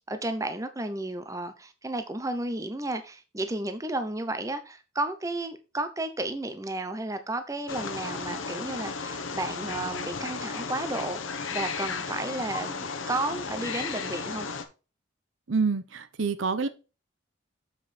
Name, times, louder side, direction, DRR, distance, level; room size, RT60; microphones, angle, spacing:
voice 1, 0.1-14.5, right 2 dB, 15° right, 0.7 m, -33 dB
Wild animals, 7.7-14.6, left 5 dB, 75° left, 1.0 m, -34 dB
voice 2, 15.5-16.7, right 4 dB, 70° right, 0.7 m, -27 dB
7.4 x 5.3 x 4.2 m
head